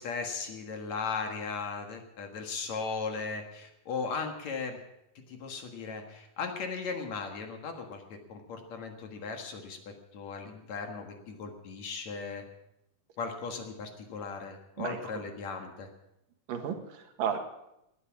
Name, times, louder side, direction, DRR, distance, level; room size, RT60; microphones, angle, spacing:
voice 1, 0.0-4.8 5.3-8.0 8.3-12.4 13.2-15.9, left 5 dB, 60° left, 4 dB, 2.7 m, -37 dB
voice 2, 14.8-15.2 16.5-17.4, right 8 dB, 75° right, 5 dB, 3.2 m, -34 dB
19.0 x 9.9 x 7.3 m, 0.87 s
omnidirectional pair, 4.0 m